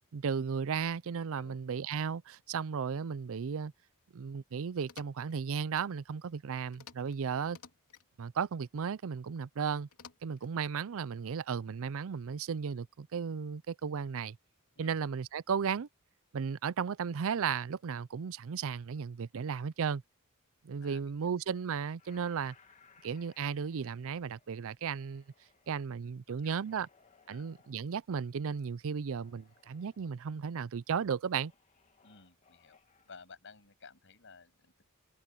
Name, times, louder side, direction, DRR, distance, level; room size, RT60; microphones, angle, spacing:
voice 1, 0.1-3.7 4.1-7.6 8.2-9.9 10.2-14.4 14.8-15.9 16.3-20.0 20.6-22.5 23.0-25.2 25.7-26.9 27.3-31.5, right 6 dB, 65° right, 0.5 m, -35 dB
sound 1, 4.8-5.4 6.7-7.2 7.4-8.1 9.9-10.5, left 7 dB, 85° left, 2.6 m, -53 dB
voice 2, 20.8-21.3 26.3-26.9 27.3-27.5 32.0-32.8 33.1-34.8, left 4 dB, 60° left, 7.1 m, -56 dB
sound 2, 22.0-25.8 26.3-27.8 29.0-30.1 31.4-33.2, left 5 dB, 35° left, 2.4 m, -65 dB
head